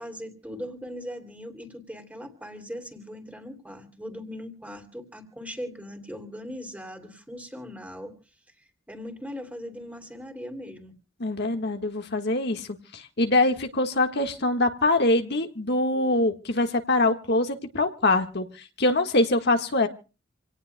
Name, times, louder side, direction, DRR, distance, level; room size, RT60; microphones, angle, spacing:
voice 1, 0.0-8.2 8.9-10.9, equal, 10° right, 5 dB, 2.8 m, -39 dB
voice 2, 11.2-19.9, left 2 dB, 55° left, 5 dB, 1.5 m, -24 dB
28.0 x 18.0 x 2.2 m, 0.35 s
head